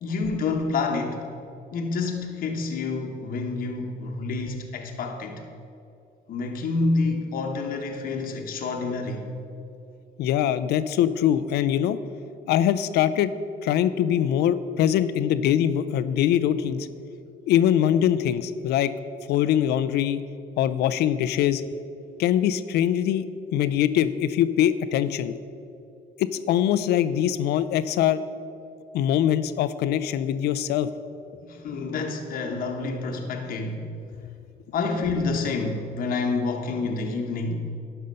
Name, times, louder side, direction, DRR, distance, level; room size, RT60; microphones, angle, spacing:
voice 1, 0.0-1.3 1.7-5.4 6.3-9.3 31.5-33.9 34.7-37.7, left 3 dB, 55° left, 3 dB, 1.0 m, -28 dB
voice 2, 10.2-12.0 12.5-13.3 13.6-16.9 17.5-18.9 19.3-20.2 20.6-21.6 22.2-23.3 23.5-25.3 26.2-28.2 28.9-30.9, left 10 dB, 75° left, 13 dB, 0.5 m, -23 dB
11.5 x 5.5 x 5.3 m, 2.7 s
cardioid pair, 110°, 17 cm